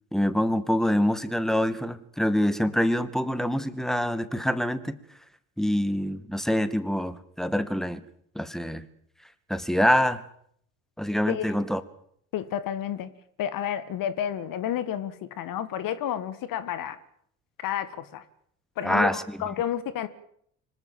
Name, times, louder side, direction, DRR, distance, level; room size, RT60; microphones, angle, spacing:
voice 1, 0.1-5.0 5.6-8.0 8.4-8.8 9.5-10.2 11.0-11.8 18.8-19.4, equal, ahead, 13 dB, 2.0 m, -25 dB
voice 2, 11.3-11.6 12.3-13.1 13.4-17.0 17.6-18.3 18.8-20.1, left 10 dB, 50° left, 15 dB, 1.8 m, -31 dB
25.5 x 18.5 x 7.6 m, 0.68 s
figure-of-eight pair, 60°, 43 cm